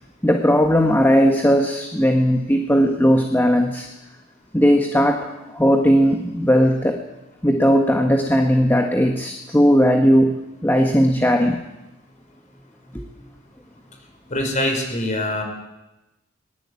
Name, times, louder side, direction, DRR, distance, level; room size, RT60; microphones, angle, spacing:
voice 1, 0.2-3.9 4.5-7.0 7.4-11.6 12.9-13.0, equal, 10° left, 4 dB, 1.6 m, -17 dB
voice 2, 14.3-15.4, left 1 dB, 40° left, 4 dB, 6.0 m, -23 dB
21.5 x 20.0 x 8.6 m, 0.98 s
head